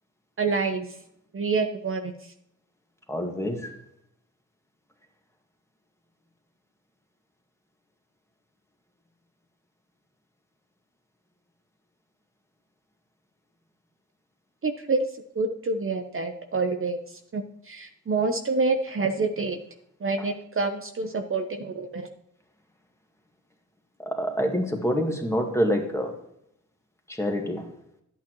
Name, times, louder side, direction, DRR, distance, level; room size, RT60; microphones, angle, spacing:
voice 1, 0.4-0.9 1.3-2.3 14.6-15.1 15.3-19.6 20.0-22.1, right 3 dB, 40° right, 5 dB, 0.8 m, -27 dB
voice 2, 3.1-3.8 18.1-18.3 20.2-20.3 24.0-26.1 27.1-27.7, equal, 10° left, 2 dB, 1.9 m, -27 dB
11.0 x 8.8 x 3.1 m, 0.75 s
cardioid pair, 80°, 32 cm